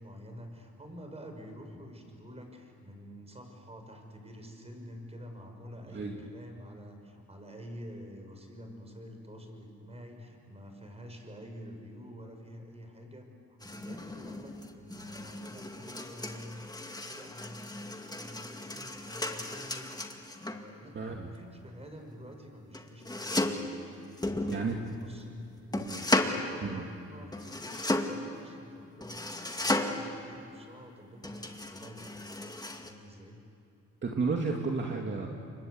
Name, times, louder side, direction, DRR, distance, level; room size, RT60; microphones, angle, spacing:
voice 1, 0.0-16.6 17.0-25.5 25.9-32.1 32.8-33.4, equal, 20° right, 4 dB, 6.1 m, -48 dB
sound 1, 13.6-20.6 22.7-23.7 24.2-25.1 25.7-26.4 27.3-28.3 29.0-30.2 31.2-32.9, left 2 dB, 15° left, 2.2 m, -34 dB
voice 2, 20.9-21.3 24.5-24.8 25.7-26.1 26.6-26.8 34.0-35.3, right 4 dB, 40° right, 1 dB, 2.5 m, -32 dB
28.5 x 24.0 x 8.0 m, 2.8 s
cardioid pair, 90°, 30 cm